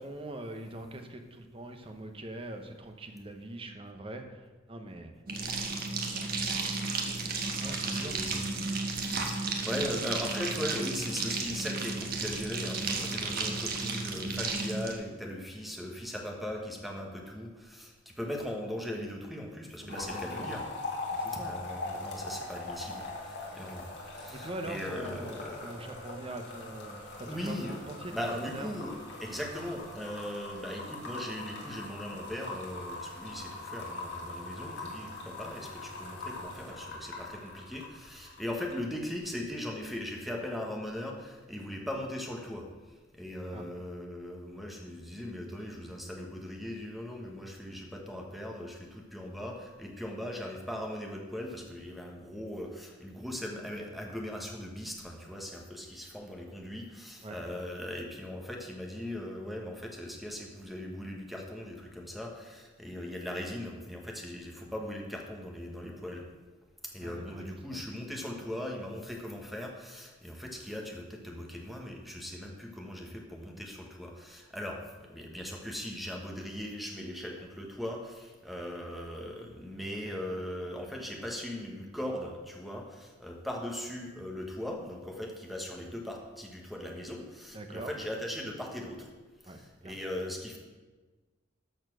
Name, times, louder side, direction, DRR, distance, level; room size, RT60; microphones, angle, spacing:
voice 1, 0.0-5.1 7.6-8.2 19.8-20.5 21.1-21.6 23.5-23.6 24.3-28.7 43.5-43.7 57.2-57.4 67.0-67.8 80.0-80.1 87.5-88.0 89.4-90.0, right 1 dB, 30° right, 6 dB, 0.8 m, -43 dB
sound 1, 5.3-14.9, right 3 dB, 50° right, 1.2 m, -33 dB
voice 2, 7.6-20.6 21.4-25.8 27.2-27.8 28.1-28.9 29.2-42.7 43.1-66.3 66.9-74.8 75.1-89.1 89.4-90.6, left 1 dB, ahead, 0 dB, 1.3 m, -39 dB
sound 2, 19.9-38.8 39.1-39.5, left 2 dB, 60° left, 2.1 m, -41 dB
13.0 x 4.4 x 6.1 m, 1.3 s
head